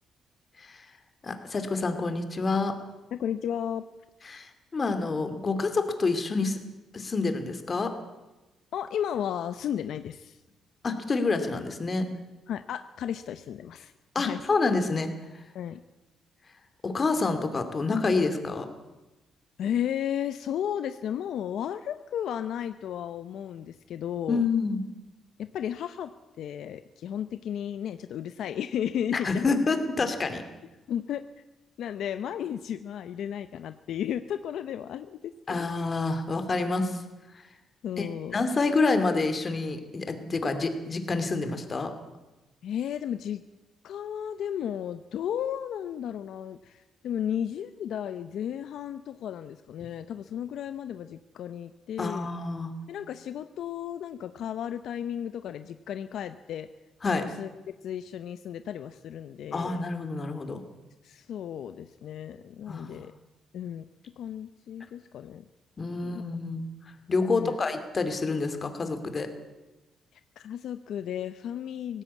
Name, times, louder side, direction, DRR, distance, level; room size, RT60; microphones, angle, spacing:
voice 1, 1.2-2.8 4.3-6.6 6.9-7.9 10.8-12.1 14.1-15.1 16.8-18.7 24.3-24.8 29.1-30.4 35.5-37.0 38.0-41.9 52.0-52.7 57.0-57.3 59.5-60.6 62.7-62.9 65.8-66.6 67.1-69.3, left 3 dB, 30° left, 8 dB, 2.5 m, -28 dB
voice 2, 3.1-3.8 8.7-10.4 12.5-13.9 14.2-14.4 15.5-15.8 19.6-24.4 25.4-26.1 26.4-29.6 30.9-31.2 31.8-35.7 37.8-38.4 42.6-43.4 43.8-52.3 52.9-56.7 57.1-59.8 61.0-63.1 63.5-63.8 64.2-65.4 66.0-66.2 67.3-67.6 70.1-72.0, left 9 dB, 75° left, 11 dB, 0.7 m, -34 dB
18.5 x 16.5 x 8.4 m, 1.1 s
cardioid pair, 125°, 0 cm